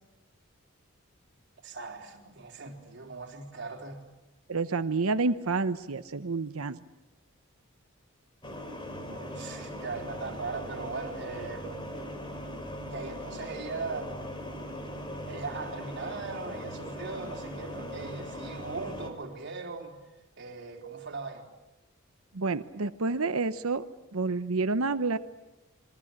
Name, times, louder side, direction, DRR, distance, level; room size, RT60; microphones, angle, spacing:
voice 1, 1.6-4.0 9.1-12.0 12.8-14.3 15.3-20.0 20.4-21.4, right 4 dB, 55° right, 2 dB, 4.0 m, -39 dB
voice 2, 4.5-6.8 22.3-23.8 24.1-25.2, right 3 dB, 85° right, 11 dB, 0.9 m, -29 dB
sound 1, 8.4-19.1, equal, 25° left, 3.5 m, -40 dB
27.0 x 23.0 x 8.7 m, 1.0 s
head